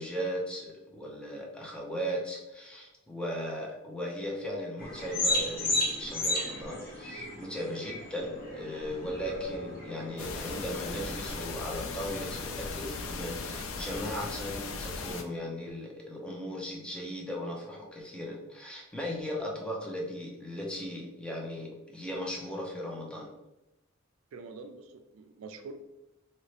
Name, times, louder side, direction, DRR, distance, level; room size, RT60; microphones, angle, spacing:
voice 1, 0.0-23.3, equal, 5° left, -2 dB, 0.6 m, -37 dB
sound 1, 4.8-11.4, left 1 dB, 45° left, 0.8 m, -34 dB
sound 2, 10.2-15.2, left 4 dB, 85° left, 0.4 m, -38 dB
voice 2, 24.3-25.8, right 3 dB, 85° right, 7 dB, 0.4 m, -45 dB
3.0 x 2.9 x 2.8 m, 0.95 s
head